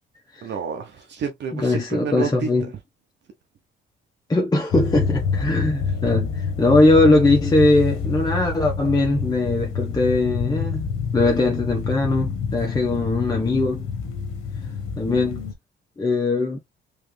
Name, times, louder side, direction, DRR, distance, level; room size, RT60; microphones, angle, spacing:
voice 1, 0.4-2.5, right 6 dB, 60° right, 1.0 m, -29 dB
voice 2, 1.5-2.7 4.3-13.9 15.0-15.4 16.0-16.6, left 2 dB, 20° left, 0.9 m, -20 dB
sound 1, 4.7-15.5, left 6 dB, 85° left, 0.9 m, -27 dB
3.2 x 3.2 x 3.2 m
cardioid pair, 90°, 20 cm